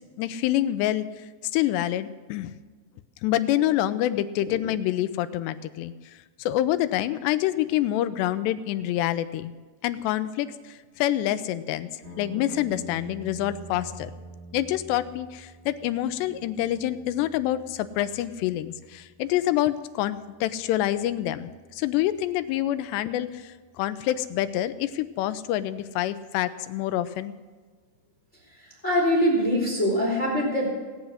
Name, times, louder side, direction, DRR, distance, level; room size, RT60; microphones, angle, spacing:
voice 1, 0.2-1.1 1.5-2.5 3.2-9.5 9.8-11.9 12.2-14.1 14.5-27.4, left 13 dB, 85° left, 12 dB, 2.8 m, -27 dB
sound 1, 12.0-26.1, right 2 dB, 55° right, 3.6 m, -48 dB
voice 2, 28.5-30.7, equal, 20° left, -2 dB, 2.8 m, -24 dB
18.0 x 9.7 x 6.3 m, 1.4 s
omnidirectional pair, 4.9 m